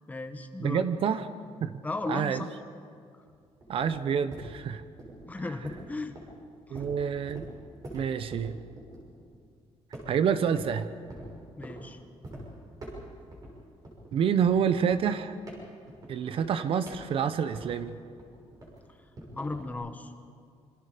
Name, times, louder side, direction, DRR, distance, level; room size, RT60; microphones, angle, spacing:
voice 1, 0.1-0.9 1.8-2.5 5.3-6.2 6.7-6.8 11.6-12.0 19.3-20.1, left 2 dB, 15° left, 7 dB, 1.2 m, -35 dB
voice 2, 0.6-1.3 1.6-1.8 2.1-2.5 3.7-4.8 6.7-7.5 7.9-8.6 10.1-10.9 14.1-15.4 16.1-18.0, right 7 dB, 50° right, 12 dB, 0.9 m, -27 dB
sound 1, 3.2-9.5 9.9-10.7 11.1-11.8 12.2-12.4 12.8-13.5 13.8-17.9 18.2-19.7, right 1 dB, 30° right, 6.6 m, -45 dB
27.5 x 25.0 x 5.1 m, 2.3 s
cardioid pair, 160°, 12 cm